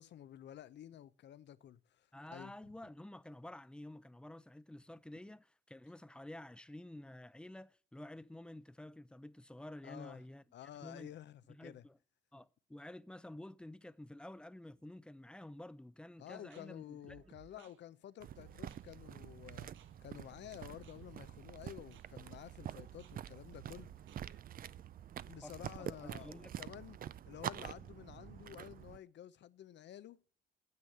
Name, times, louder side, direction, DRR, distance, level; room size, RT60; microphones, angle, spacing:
voice 1, 0.0-2.7 9.8-10.2 10.5-11.9 16.2-19.7 20.0-23.9 25.3-27.0 27.2-30.2, left 11 dB, 65° left, 0.7 m, -52 dB
voice 2, 2.1-10.4 10.8-11.1 11.5-12.0 12.3-17.2 17.6-17.7 25.4-26.5, left 1 dB, 5° left, 0.5 m, -51 dB
sound 1, 16.3-24.4, right 8 dB, 80° right, 0.9 m, -61 dB
sound 2, 18.2-29.0, right 10 dB, 45° right, 0.4 m, -47 dB
9.5 x 7.1 x 7.8 m
cardioid pair, 90°, 20 cm